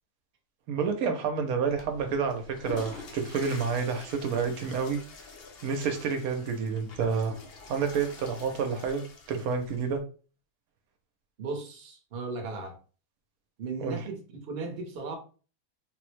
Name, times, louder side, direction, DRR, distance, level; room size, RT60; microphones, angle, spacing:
voice 1, 0.7-5.0 5.6-7.4 7.7-10.0 13.8-14.0, right 5 dB, 80° right, 1.0 m, -29 dB
Water / Toilet flush, 1.6-10.0, left 3 dB, 60° left, 0.6 m, -46 dB
voice 2, 11.4-12.8 13.6-15.2, right 3 dB, 50° right, 0.8 m, -36 dB
3.6 x 2.0 x 3.1 m
omnidirectional pair, 1.5 m